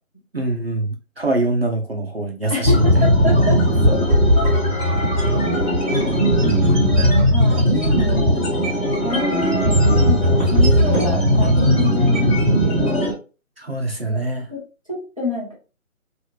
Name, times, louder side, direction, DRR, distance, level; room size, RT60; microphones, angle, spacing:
voice 1, 0.3-2.9 13.6-14.5, right 2 dB, 45° right, 2 dB, 0.5 m, -24 dB
voice 2, 2.5-4.0 6.8-8.4 9.0-13.1 14.0-14.2 14.5-14.6 14.9-15.5, left 2 dB, 25° left, -6 dB, 0.8 m, -27 dB
sound 1, 2.6-13.1, equal, 5° left, 1.2 m, -17 dB
3.0 x 2.4 x 3.0 m, 0.33 s
figure-of-eight pair, 170°, 42 cm